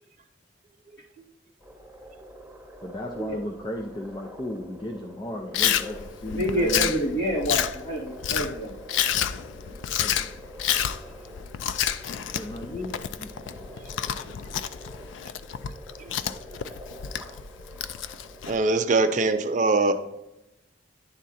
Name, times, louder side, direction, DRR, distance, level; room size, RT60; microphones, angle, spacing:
sound 1, 1.6-18.8, equal, ahead, 2.5 m, -46 dB
voice 1, 2.8-6.9 9.6-10.4 10.7-10.9 11.7-13.7, left 1 dB, 25° left, 1 dB, 0.5 m, -36 dB
Chewing mastication, 5.5-18.6, left 9 dB, 85° left, 0.4 m, -29 dB
voice 2, 6.3-8.8, equal, 60° left, -6 dB, 3.0 m, -27 dB
voice 3, 18.5-19.9, right 3 dB, 40° right, 8 dB, 0.4 m, -22 dB
10.5 x 3.6 x 4.2 m, 0.91 s
head